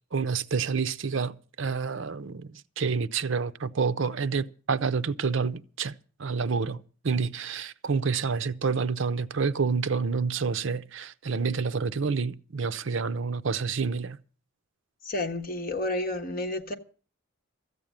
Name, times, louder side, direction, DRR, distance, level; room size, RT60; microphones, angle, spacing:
voice 1, 0.1-14.2, right 5 dB, 60° right, 0.6 m, -28 dB
voice 2, 15.0-16.7, left 2 dB, 40° left, 1.4 m, -30 dB
14.0 x 8.3 x 8.8 m
head